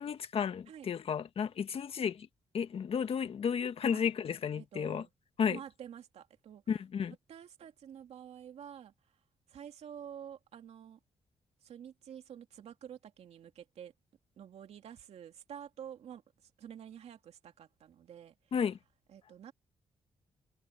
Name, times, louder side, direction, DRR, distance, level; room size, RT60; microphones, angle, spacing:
voice 1, 0.0-2.3 2.5-5.0 5.4-5.6 6.7-7.1 18.5-18.8, left 7 dB, 60° left, 1.5 m, -33 dB
voice 2, 4.5-5.1 5.5-6.6 7.3-8.9 9.5-11.0 11.6-13.9 14.4-18.3 19.1-19.5, right 9 dB, 75° right, 2.7 m, -49 dB
cardioid pair, 70°, 11 cm